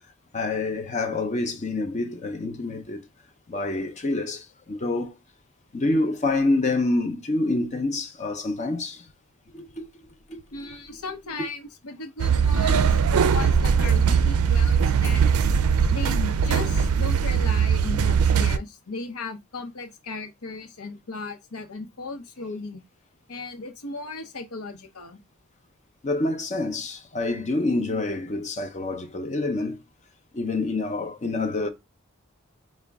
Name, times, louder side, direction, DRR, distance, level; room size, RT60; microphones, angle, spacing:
voice 1, 0.3-3.0 3.5-5.2 5.7-9.0 9.5-9.9 10.3-10.7 26.0-29.8 30.3-31.7, left 2 dB, 30° left, 0.6 m, -27 dB
voice 2, 10.5-15.4 15.9-22.8 23.3-25.2, left 3 dB, 80° left, 0.8 m, -36 dB
sound 1, 12.2-18.6, right 6 dB, 80° right, 0.4 m, -20 dB
4.9 x 2.2 x 3.4 m
head